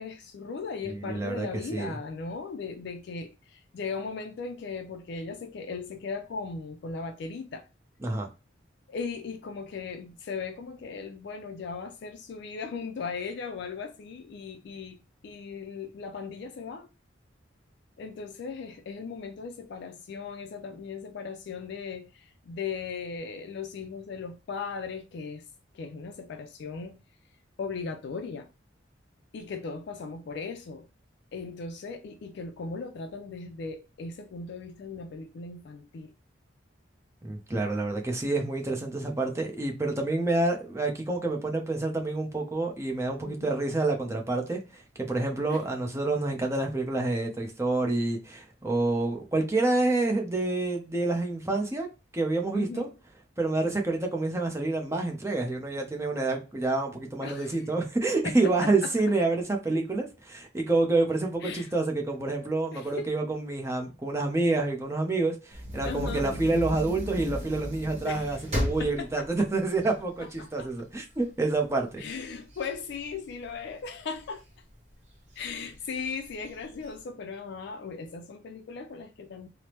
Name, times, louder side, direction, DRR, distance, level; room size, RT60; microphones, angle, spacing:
voice 1, 0.0-7.6 8.9-16.9 18.0-25.4 25.7-27.0 27.6-28.5 29.3-30.9 31.3-36.1 43.2-43.5 45.5-45.6 52.5-52.9 57.2-57.7 58.2-58.4 58.6-58.9 61.4-61.7 62.4-63.1 65.9-66.3 68.0-68.4 68.8-69.3 70.4-70.7 72.0-74.4 75.4-79.5, left 5 dB, 60° left, 0.3 m, -38 dB
voice 2, 0.8-1.5 1.7-2.0 8.0-8.3 37.2-51.9 52.1-52.9 53.4-72.0, right 2 dB, 15° right, 0.6 m, -28 dB
sound 1, 65.5-70.7 71.2-71.3 71.6-73.7 74.2-74.8 75.4-75.5 75.8-75.9 76.3-76.9, equal, 40° right, 1.0 m, -35 dB
3.3 x 2.0 x 2.8 m
head